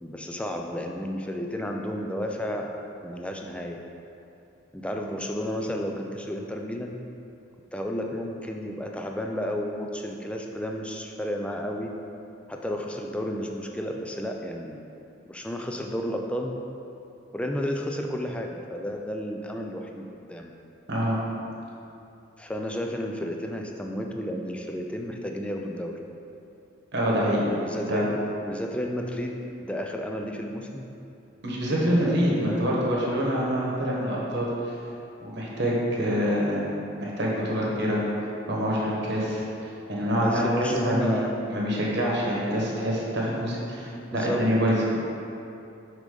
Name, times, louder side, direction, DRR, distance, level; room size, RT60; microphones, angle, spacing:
voice 1, 0.0-2.8 3.0-3.8 4.7-6.9 7.7-11.9 12.5-14.8 15.3-16.6 17.3-20.5 22.4-26.0 27.2-30.8 32.0-32.7 40.0-41.3 44.1-44.5 44.8-45.1, equal, 5° left, 2 dB, 0.3 m, -32 dB
voice 2, 26.9-27.4 27.9-28.0 31.4-34.5 35.2-36.6 37.0-38.0 38.5-41.2 41.5-44.7, equal, 55° right, -4 dB, 1.1 m, -26 dB
6.4 x 5.0 x 3.8 m, 2.7 s
head